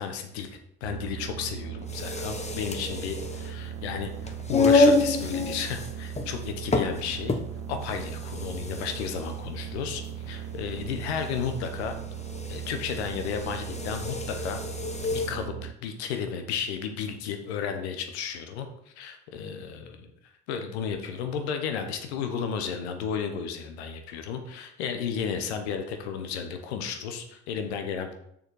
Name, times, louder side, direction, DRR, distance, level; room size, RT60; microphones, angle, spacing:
voice 1, 0.0-7.4 7.7-12.0 12.5-14.6 15.1-18.7 19.0-20.1 20.5-28.1, left 7 dB, 75° left, 6 dB, 1.2 m, -33 dB
sound 1, 0.8-15.7, right 9 dB, 60° right, 0.7 m, -38 dB
sound 2, 1.8-15.4, left 3 dB, 20° left, 1.2 m, -29 dB
6.7 x 6.6 x 4.8 m, 0.76 s
hypercardioid pair, 50°, 32 cm